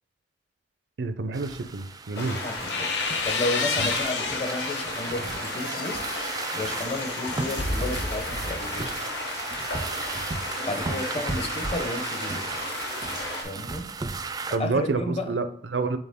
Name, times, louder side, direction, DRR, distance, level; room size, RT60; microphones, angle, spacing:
voice 1, 1.0-2.4 3.8-3.9 14.5-16.0, right 3 dB, 75° right, 10 dB, 0.5 m, -28 dB
sound 1, 1.3-14.6, right 4 dB, 20° right, 0.3 m, -35 dB
sound 2, 2.1-13.4, left 2 dB, 65° left, 1.7 m, -34 dB
voice 2, 2.2-2.9 3.2-6.0 6.5-8.9 10.6-12.4 13.4-13.9 14.6-15.3, left 2 dB, 35° left, 6 dB, 0.8 m, -32 dB
sound 3, 2.3-5.0 5.4-8.8, left 4 dB, 80° left, 0.8 m, -31 dB
7.9 x 3.8 x 3.6 m, 0.65 s
head